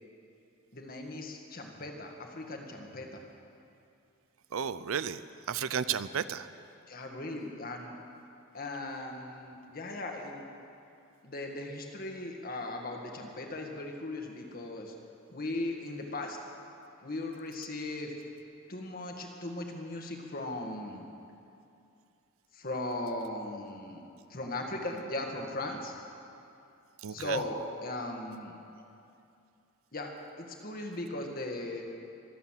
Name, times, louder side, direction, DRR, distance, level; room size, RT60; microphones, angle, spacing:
voice 1, 0.7-3.2 6.9-7.9 8.5-10.4 11.2-14.9 15.3-16.4 17.0-18.1 18.7-21.1 22.5-24.0 24.3-25.9 27.1-28.8 29.9-30.1 30.4-31.8, left 2 dB, 45° left, 2 dB, 1.8 m, -38 dB
voice 2, 4.5-5.2 5.5-6.5 27.0-27.4, right 7 dB, 80° right, 15 dB, 0.5 m, -33 dB
23.5 x 8.3 x 7.4 m, 2.6 s
head